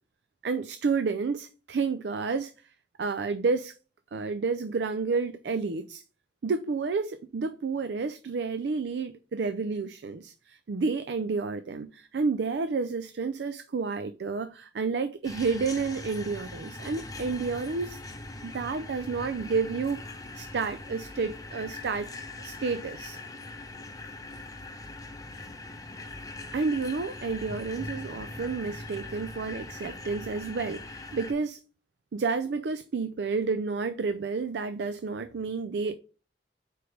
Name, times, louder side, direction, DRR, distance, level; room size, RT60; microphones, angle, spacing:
voice 1, 0.4-2.5 3.0-3.7 4.1-6.0 6.4-18.0 18.4-22.1 22.4-23.2 26.5-31.6 32.1-36.0, right 4 dB, 65° right, 0.4 m, -30 dB
sound 1, 15.2-31.3, left 2 dB, 20° left, 0.8 m, -41 dB
4.9 x 4.7 x 5.0 m
head